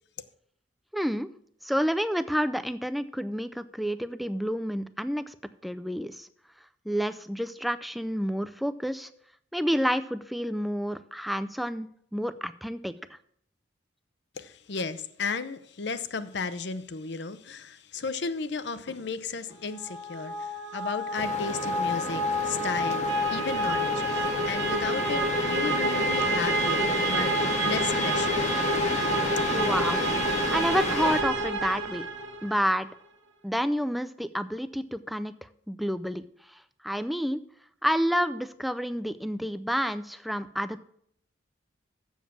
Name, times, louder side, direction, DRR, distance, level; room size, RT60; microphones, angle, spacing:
voice 1, 0.9-1.3 1.6-5.4 5.6-6.3 6.9-9.1 9.5-12.9 29.5-30.0 30.5-32.1 32.4-32.9 33.4-37.4 37.8-40.8, equal, ahead, 0.3 m, -29 dB
voice 2, 14.4-28.5, left 4 dB, 60° left, 0.6 m, -34 dB
sound 1, 19.7-32.5, right 1 dB, 70° right, 1.2 m, -28 dB
sound 2, 21.2-31.2, left 3 dB, 35° left, 0.9 m, -32 dB
7.2 x 7.2 x 7.3 m
head